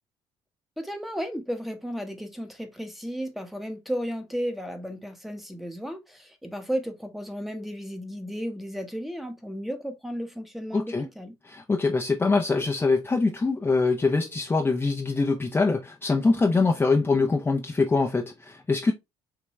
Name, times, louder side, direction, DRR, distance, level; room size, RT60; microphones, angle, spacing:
voice 1, 0.8-11.4, equal, ahead, 1.1 m, -34 dB
voice 2, 10.7-11.1 11.4-18.9, left 3 dB, 15° left, 0.7 m, -23 dB
5.1 x 3.0 x 3.1 m
cardioid pair, 100°, 13 cm